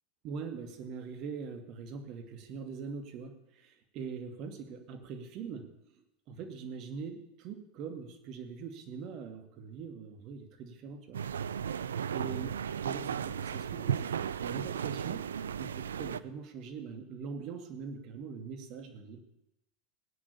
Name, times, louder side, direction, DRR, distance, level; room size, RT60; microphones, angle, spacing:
voice 1, 0.2-5.7 5.9-11.2 12.1-15.2 15.6-19.2, right 5 dB, 50° right, 8 dB, 2.3 m, -42 dB
sound 1, 11.1-16.2, right 8 dB, 80° right, 0.5 m, -35 dB
18.0 x 9.7 x 6.8 m, 0.87 s
hypercardioid pair, 85°, 0 cm